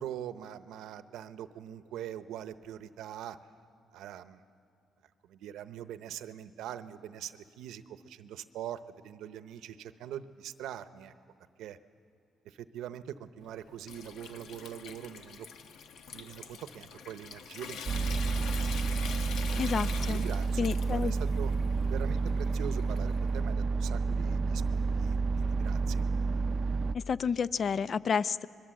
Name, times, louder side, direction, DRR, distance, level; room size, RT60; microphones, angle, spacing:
voice 1, 0.0-3.4 3.9-4.4 5.2-11.1 11.6-11.8 12.4-15.5 16.1-18.5 20.1-21.5 21.9-26.0, right 10 dB, 85° right, 12 dB, 0.8 m, -43 dB
Water tap faucet / Sink (filling or washing) / Trickle dribble, 13.4-23.3, left 6 dB, 80° left, 1.1 m, -45 dB
sound 1, 17.9-26.9, right 4 dB, 45° right, 0.5 m, -30 dB
voice 2, 19.6-20.2 20.6-21.1 26.9-28.5, left 6 dB, 50° left, 16 dB, 0.5 m, -30 dB
25.5 x 22.0 x 7.7 m, 2.6 s
cardioid pair, 90°, 0 cm